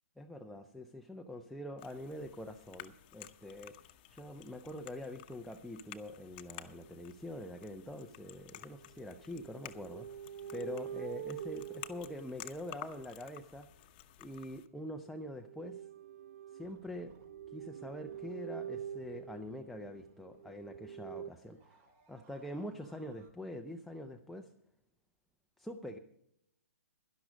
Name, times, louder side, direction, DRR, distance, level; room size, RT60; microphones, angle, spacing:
voice 1, 0.2-3.8 4.1-13.7 14.2-15.9 16.5-17.1 17.5-21.8 22.1-24.5 25.6-26.0, left 1 dB, ahead, 3 dB, 0.5 m, -45 dB
sound 1, 1.8-14.7, left 14 dB, 35° left, 0.8 m, -53 dB
sound 2, 7.5-7.8 8.7-13.1 15.3-21.3, right 10 dB, 55° right, 0.4 m, -46 dB
sound 3, 16.6-23.3, right 3 dB, 35° right, 2.3 m, -66 dB
11.5 x 11.5 x 5.1 m, 0.78 s
figure-of-eight pair, 130°, 8 cm